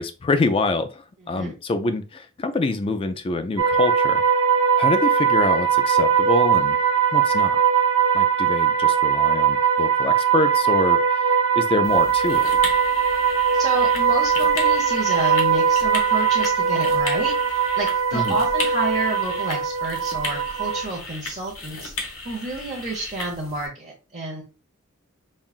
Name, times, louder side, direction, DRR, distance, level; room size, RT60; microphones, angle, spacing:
voice 1, 0.0-4.2 4.8-6.8 7.1-7.6 8.1-11.2 11.5-12.5 18.1-18.4, left 3 dB, 25° left, 10 dB, 0.3 m, -25 dB
sound 1, 3.6-20.8, right 7 dB, 65° right, 0.6 m, -20 dB
sound 2, 11.8-23.7, left 2 dB, 70° left, 1.1 m, -35 dB
voice 2, 13.5-24.4, right 2 dB, 35° right, -5 dB, 0.9 m, -30 dB
5.4 x 2.4 x 2.4 m, 0.31 s
head